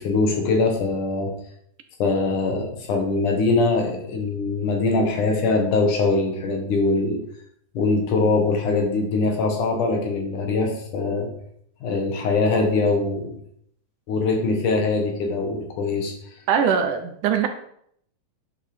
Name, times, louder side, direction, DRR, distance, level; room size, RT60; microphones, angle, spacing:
voice 1, 0.0-1.3 2.0-7.2 7.7-11.3 11.8-13.4 14.1-16.1, left 3 dB, 65° left, 3 dB, 2.9 m, -22 dB
voice 2, 16.5-17.5, right 7 dB, 70° right, 6 dB, 2.2 m, -21 dB
10.5 x 7.2 x 5.0 m, 0.68 s
omnidirectional pair, 4.1 m